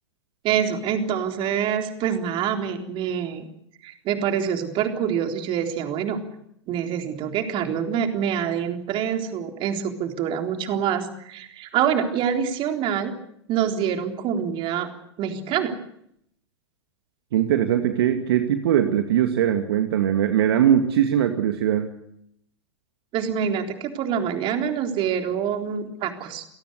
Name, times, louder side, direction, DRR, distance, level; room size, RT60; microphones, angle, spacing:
voice 1, 0.4-3.5 3.8-6.2 6.7-13.1 13.5-14.9 15.2-15.7 23.1-26.4, right 8 dB, 35° right, 5 dB, 3.8 m, -26 dB
voice 2, 17.3-21.9, right 10 dB, 60° right, 7 dB, 2.2 m, -21 dB
28.5 x 18.5 x 8.1 m, 0.73 s
figure-of-eight pair, 100°, 15 cm